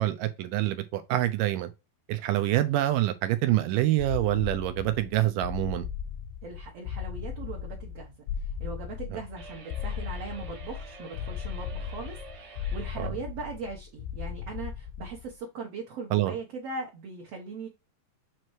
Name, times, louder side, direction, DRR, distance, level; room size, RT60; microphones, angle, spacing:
voice 1, 0.0-1.7 2.1-5.9 9.1-9.2 13.0-13.1 16.1-16.3, right 14 dB, 85° right, 1.9 m, -26 dB
sound 1, 4.0-15.4, left 8 dB, 85° left, 2.3 m, -37 dB
voice 2, 6.4-17.7, right 4 dB, 60° right, 1.7 m, -40 dB
sound 2, 9.4-13.0, right 3 dB, 45° right, 1.7 m, -48 dB
7.6 x 3.0 x 4.6 m
omnidirectional pair, 4.3 m